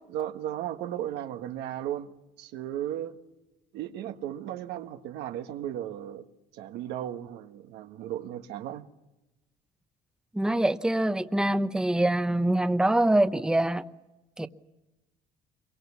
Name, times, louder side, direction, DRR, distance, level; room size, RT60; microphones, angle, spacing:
voice 1, 0.1-2.1 2.4-3.1 3.7-6.2 6.5-8.9, right 11 dB, 90° right, 1.5 m, -35 dB
voice 2, 10.3-13.8 14.4-14.5, right 1 dB, 5° right, 0.8 m, -24 dB
25.5 x 23.5 x 7.2 m
cardioid pair, 110°, 17 cm